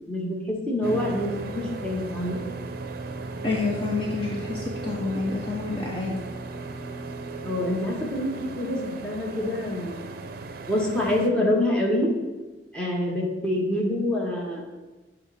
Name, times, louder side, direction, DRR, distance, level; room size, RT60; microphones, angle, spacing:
voice 1, 0.1-1.3 1.5-2.4 7.4-10.0 10.7-12.1 12.7-14.7, left 1 dB, 5° left, -4 dB, 1.4 m, -26 dB
sound 1, 0.8-11.3, right 3 dB, 55° right, 0.5 m, -36 dB
voice 2, 3.4-6.2, left 3 dB, 30° left, -3 dB, 0.8 m, -28 dB
8.1 x 3.2 x 5.7 m, 1.2 s
head